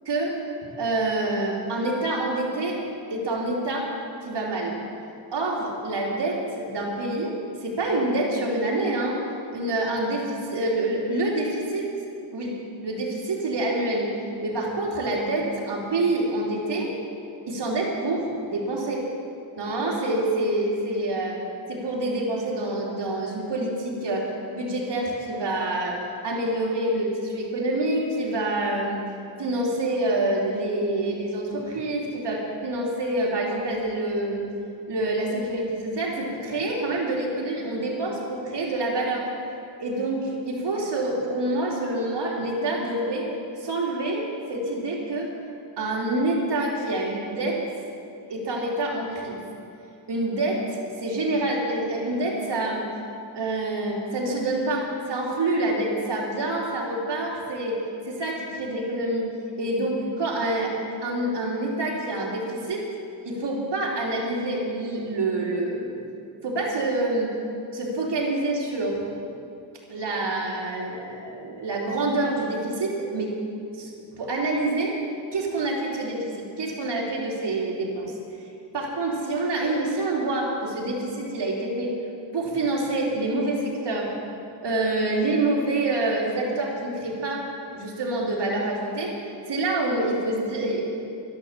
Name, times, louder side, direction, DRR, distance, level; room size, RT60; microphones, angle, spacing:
voice 1, 0.8-2.8 3.1-3.9 4.2-4.8 5.3-9.2 9.5-11.9 12.3-12.5 12.8-14.1 14.4-16.9 17.5-19.0 19.6-21.4 21.7-29.0 29.4-34.4 34.9-39.3 39.8-43.3 43.6-45.3 45.8-47.6 48.3-49.4 50.1-52.9 53.3-60.7 61.0-62.9 63.2-66.0 66.4-67.3 67.7-69.0 69.9-73.3 73.7-73.9 74.2-75.0 75.3-78.1 78.7-81.9 82.3-84.1 84.6-87.4 87.7-89.2 89.5-90.8, right 2 dB, 60° right, -2 dB, 3.4 m, -27 dB
12.0 x 11.5 x 7.4 m, 2.5 s
cardioid pair, 80°, 47 cm